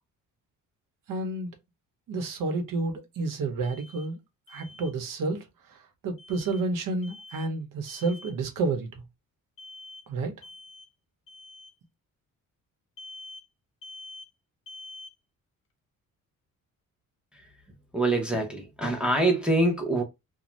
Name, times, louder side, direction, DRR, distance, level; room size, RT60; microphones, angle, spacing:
voice 1, 1.1-1.6 2.1-4.2 4.5-9.0 10.1-10.3, right 3 dB, 75° right, 1.0 m, -30 dB
Alarm, 3.6-4.1 4.5-4.9 6.2-6.6 7.0-7.5 7.9-8.4 9.6-10.1 10.4-10.9 11.3-11.7 13.0-13.5 13.8-14.3 14.7-15.1, left 2 dB, 40° left, 0.7 m, -46 dB
voice 2, 17.9-20.0, right 2 dB, 5° right, 0.7 m, -24 dB
2.6 x 2.3 x 3.1 m
cardioid pair, 135°, 33 cm